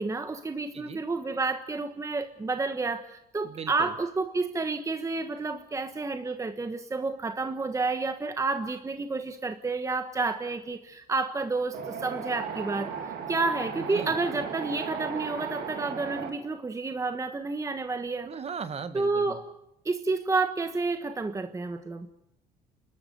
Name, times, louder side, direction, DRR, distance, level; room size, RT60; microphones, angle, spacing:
voice 1, 0.0-12.9 13.3-18.3 18.9-19.4 19.8-22.1, right 3 dB, 20° right, 8 dB, 1.2 m, -30 dB
voice 2, 3.4-3.9 13.8-14.1 18.2-19.4, right 6 dB, 35° right, 11 dB, 1.7 m, -38 dB
Wind, 11.7-16.3, right 6 dB, 85° right, 3.4 m, -36 dB
29.0 x 13.0 x 9.4 m, 0.83 s
cardioid pair, 110°, 17 cm